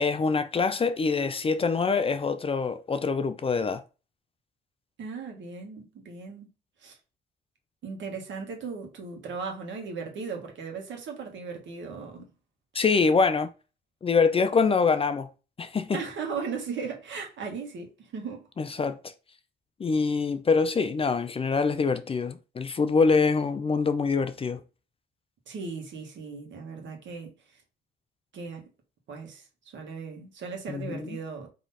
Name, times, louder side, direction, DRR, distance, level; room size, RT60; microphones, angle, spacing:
voice 1, 0.0-3.8 12.7-13.5 14.0-15.3 15.6-16.0 18.6-19.0 19.8-24.6 30.7-31.2, left 4 dB, 30° left, 0.5 m, -25 dB
voice 2, 5.0-6.5 6.8-7.0 7.8-12.3 15.9-18.5 25.5-27.6 28.3-28.7 29.1-31.5, right 5 dB, 70° right, 1.5 m, -37 dB
3.9 x 3.0 x 4.1 m
cardioid pair, 90°, 20 cm